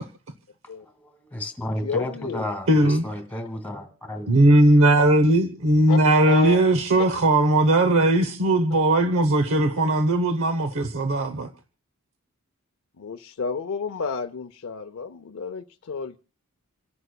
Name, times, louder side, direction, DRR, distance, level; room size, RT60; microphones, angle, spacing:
voice 1, 0.8-4.4, left 1 dB, 5° left, 1.8 m, -33 dB
voice 2, 1.8-2.5 5.9-6.0 6.2-6.6 13.0-16.2, left 5 dB, 70° left, 0.5 m, -30 dB
voice 3, 2.7-3.0 4.3-11.5, right 1 dB, 65° right, 0.9 m, -19 dB
28.0 x 11.0 x 2.3 m
head